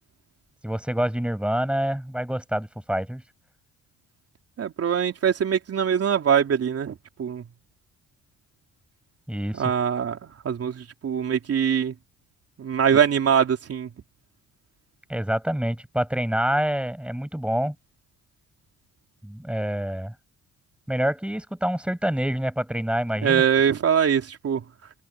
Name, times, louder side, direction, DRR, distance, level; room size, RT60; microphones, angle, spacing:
voice 1, 0.6-3.2 9.3-9.6 15.1-17.7 19.2-20.1 20.9-23.4, equal, 5° right, 8.0 m, -26 dB
voice 2, 4.6-7.5 9.5-11.9 12.6-13.9 23.2-24.6, right 8 dB, 50° right, 3.4 m, -23 dB
cardioid pair, 90°, 30 cm